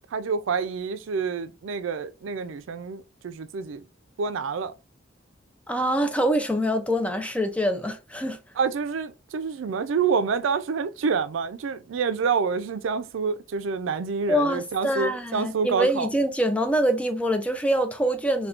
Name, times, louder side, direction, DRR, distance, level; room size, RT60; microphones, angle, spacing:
voice 1, 0.1-3.8 4.2-4.7 8.6-16.1, right 5 dB, 90° right, 0.4 m, -27 dB
voice 2, 5.7-8.4 14.3-18.5, equal, 5° left, 0.4 m, -25 dB
3.5 x 2.2 x 2.4 m
head